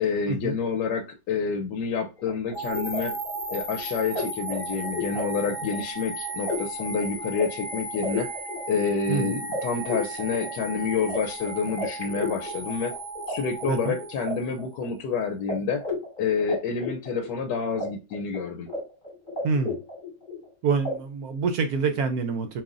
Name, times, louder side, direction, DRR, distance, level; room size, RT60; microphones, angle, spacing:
voice 1, 0.0-3.2 3.5-8.3 8.7-12.9 13.3-15.8 16.2-18.7, left 5 dB, 85° left, 6 dB, 1.2 m, -28 dB
sound 1, 2.2-13.3 13.6-15.1 15.5-15.6 15.8-17.9 18.1-18.8 19.0-20.5 20.8-20.9, left 2 dB, 25° left, 1.6 m, -34 dB
sound 2, 2.5-14.7, right 3 dB, 45° left, 3.2 m, -36 dB
voice 2, 9.1-9.4 13.7-14.0 19.4-19.8 20.6-22.6, right 5 dB, 70° right, 7 dB, 1.0 m, -26 dB
7.3 x 2.7 x 2.4 m, 0.28 s
omnidirectional pair, 1.8 m